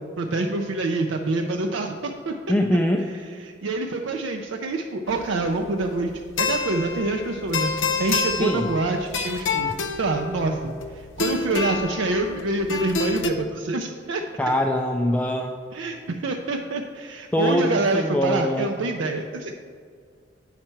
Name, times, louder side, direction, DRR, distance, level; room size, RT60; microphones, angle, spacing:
voice 1, 0.2-2.3 3.6-6.1 6.4-9.7 10.0-14.2 15.7-19.6, right 2 dB, 90° right, 3 dB, 0.5 m, -26 dB
voice 2, 2.5-3.2 8.4-8.7 14.4-15.5 17.3-18.7, left 1 dB, 10° left, 2 dB, 0.3 m, -23 dB
sound 1, 5.1-13.3, left 5 dB, 85° left, 0.6 m, -29 dB
8.8 x 5.8 x 4.4 m, 2.1 s
head